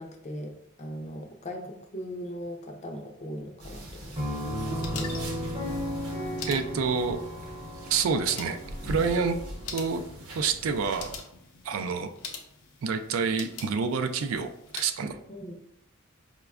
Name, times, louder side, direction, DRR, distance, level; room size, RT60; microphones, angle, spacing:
voice 1, 0.0-5.1 6.7-6.9 15.3-15.6, equal, 30° left, 3 dB, 0.4 m, -40 dB
sound 1, 3.6-11.2, equal, 85° right, 0.8 m, -42 dB
sound 2, 3.8-14.9, left 5 dB, 80° left, 0.6 m, -45 dB
Piano, 4.2-9.7, equal, 25° right, 0.7 m, -35 dB
voice 2, 6.5-7.2 7.9-8.6 8.8-9.4 9.7-10.0 10.3-11.1 11.6-12.1 12.8-15.2, right 5 dB, 65° right, 7 dB, 0.3 m, -27 dB
4.9 x 2.2 x 2.3 m, 0.76 s
head